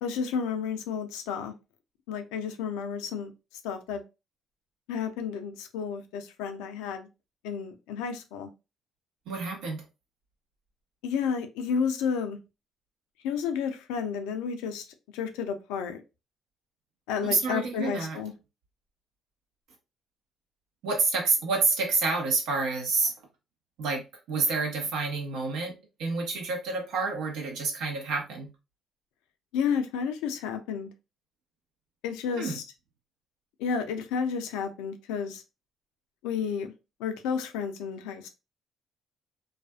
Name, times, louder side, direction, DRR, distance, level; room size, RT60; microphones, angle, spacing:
voice 1, 0.0-1.5 2.1-3.3 3.6-4.0 4.9-7.1 7.4-8.5 11.0-12.4 13.2-14.9 15.1-16.0 17.1-18.3 29.5-30.9 32.0-32.6 33.6-35.4 36.2-36.7 37.0-38.3, left 6 dB, 80° left, 0.4 m, -31 dB
voice 2, 9.3-9.8 17.2-18.2 20.8-23.1 23.8-24.0 24.3-25.7 26.0-28.5 32.4-32.6, right 3 dB, 70° right, 0.8 m, -28 dB
2.4 x 2.3 x 2.2 m
hypercardioid pair, 55°, 0 cm